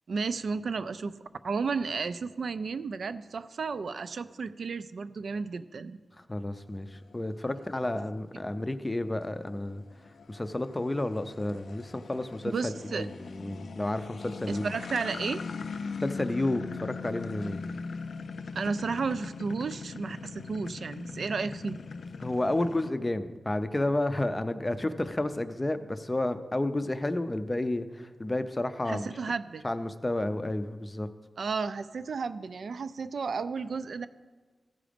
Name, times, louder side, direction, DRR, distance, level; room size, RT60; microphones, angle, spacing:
voice 1, 0.1-1.1 1.4-6.0 12.4-13.1 14.5-15.4 18.5-21.8 28.9-29.6 31.4-34.1, right 4 dB, 70° right, 12 dB, 0.3 m, -33 dB
voice 2, 6.3-9.8 10.3-14.7 16.0-17.6 22.2-29.1 29.6-31.1, left 1 dB, 20° left, 10 dB, 0.4 m, -31 dB
sound 1, 6.8-22.9, left 5 dB, 80° left, 0.3 m, -41 dB
14.5 x 5.0 x 5.1 m, 1.3 s
wide cardioid pair, 145°, 0 cm